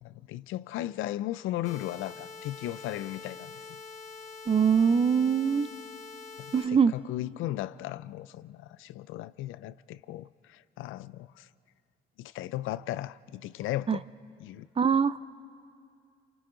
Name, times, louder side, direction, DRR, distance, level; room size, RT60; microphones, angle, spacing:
voice 1, 0.0-3.8 6.4-11.5 12.2-14.0 14.4-14.7, left 14 dB, 85° left, 0.5 m, -36 dB
sound 1, 1.6-6.6, left 4 dB, 35° left, 2.2 m, -45 dB
voice 2, 4.5-5.7 6.5-6.9 13.9-14.0 14.8-15.2, right 6 dB, 30° right, 0.5 m, -23 dB
28.0 x 26.0 x 3.9 m
cardioid pair, 90°, 20 cm